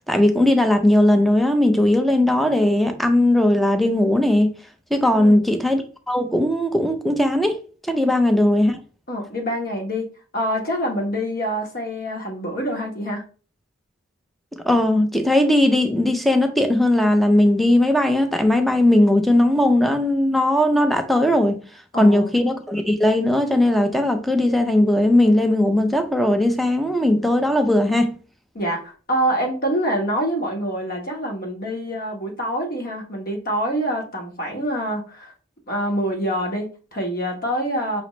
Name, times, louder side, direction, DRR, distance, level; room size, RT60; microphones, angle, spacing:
voice 1, 0.1-4.5 4.9-5.8 6.1-7.6 7.9-8.8 14.6-21.6 22.0-28.1, left 1 dB, ahead, 0.5 m, -18 dB
voice 2, 9.1-10.1 10.3-13.2 21.9-22.3 28.5-35.3 35.7-38.0, equal, 45° left, 1.1 m, -26 dB
5.1 x 3.0 x 3.1 m
head